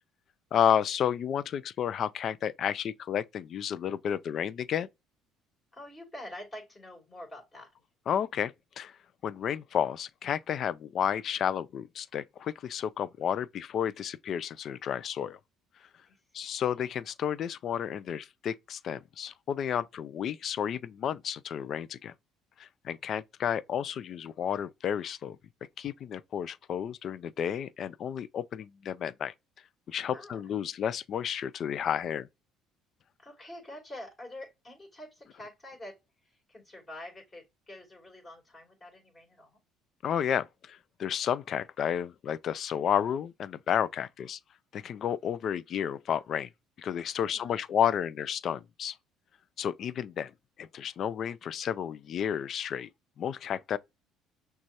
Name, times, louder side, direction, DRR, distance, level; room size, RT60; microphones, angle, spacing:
voice 1, 0.5-4.9 8.1-9.0 9.2-15.4 16.3-22.1 22.6-25.4 25.8-29.3 29.9-32.3 40.0-44.4 44.7-46.5 46.8-48.9 49.6-50.3 50.6-52.9 53.2-53.8, left 9 dB, 50° left, 0.3 m, -31 dB
voice 2, 5.7-7.7 16.1-16.2 16.6-16.7 30.0-30.4 33.2-36.0 36.5-39.6 47.2-47.6, left 1 dB, 20° left, 2.8 m, -46 dB
6.0 x 2.3 x 2.8 m
supercardioid pair, 95°, 0 cm